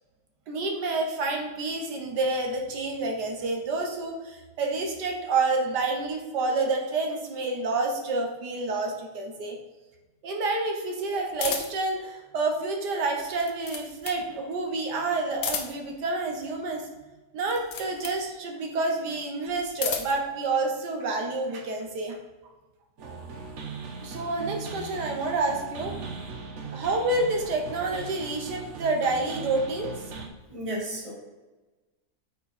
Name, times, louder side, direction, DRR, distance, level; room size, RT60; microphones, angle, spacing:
voice 1, 0.5-9.6 10.2-16.9 17.3-22.2 24.0-26.0 26.7-30.2, right 3 dB, 80° right, 2 dB, 1.6 m, -28 dB
sound 1, 11.4-11.9 13.2-14.3 15.3-16.0 17.4-18.2 19.5-20.2, left 6 dB, 90° left, 1.5 m, -33 dB
sound 2, 23.0-30.3, right 4 dB, 50° right, 1.1 m, -39 dB
voice 2, 30.5-31.1, right 1 dB, 20° right, -2 dB, 1.5 m, -33 dB
8.3 x 4.3 x 4.2 m, 1.2 s
omnidirectional pair, 1.8 m